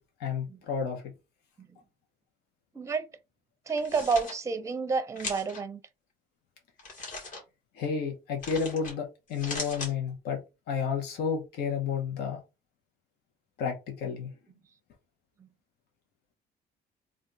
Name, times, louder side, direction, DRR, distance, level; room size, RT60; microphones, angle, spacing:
voice 1, 0.2-1.1 7.7-12.4 13.6-14.3, left 6 dB, 80° left, 1.1 m, -31 dB
voice 2, 2.7-3.1 3.7-5.8, right 4 dB, 20° right, 0.5 m, -29 dB
sound 1, 3.7-4.3 5.2-5.6 6.8-7.4 8.4-8.9 9.3-9.9, left 3 dB, 50° left, 2.0 m, -38 dB
3.6 x 2.5 x 4.0 m
cardioid pair, 110°, 17 cm